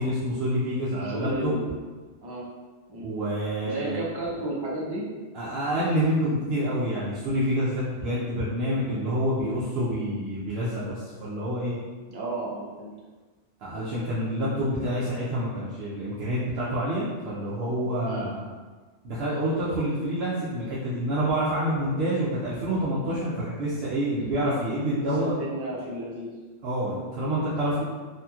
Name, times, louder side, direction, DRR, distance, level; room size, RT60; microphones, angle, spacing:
voice 1, 0.0-1.5 3.0-3.9 5.3-11.7 13.6-18.5 19.0-25.3 26.6-27.8, equal, 65° right, -9 dB, 0.8 m, -27 dB
voice 2, 0.9-1.7 2.2-2.5 2.9-3.1 3.6-5.0 8.0-8.3 12.1-12.9 18.1-18.3 25.2-26.3, right 1 dB, 35° right, -4 dB, 0.4 m, -33 dB
2.8 x 2.8 x 2.3 m, 1.3 s
omnidirectional pair, 1.2 m